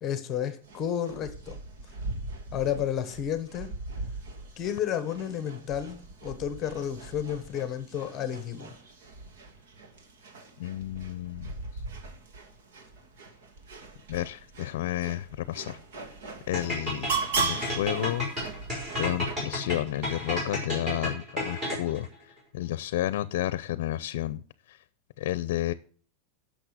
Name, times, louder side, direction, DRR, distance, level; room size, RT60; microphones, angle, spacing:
voice 1, 0.0-1.6 2.5-3.7 4.6-8.7, left 9 dB, 25° left, 1.1 m, -31 dB
sound 1, 0.6-19.4, right 4 dB, 75° right, 2.5 m, -39 dB
voice 2, 10.6-11.8 14.1-15.8 16.5-18.3 19.0-22.1 22.5-24.4 24.7-24.8 25.2-25.7, left 14 dB, 65° left, 0.6 m, -31 dB
sound 2, 16.5-22.1, left 1 dB, 20° right, 5.3 m, -32 dB
11.0 x 6.6 x 8.2 m
supercardioid pair, 175°, 0 cm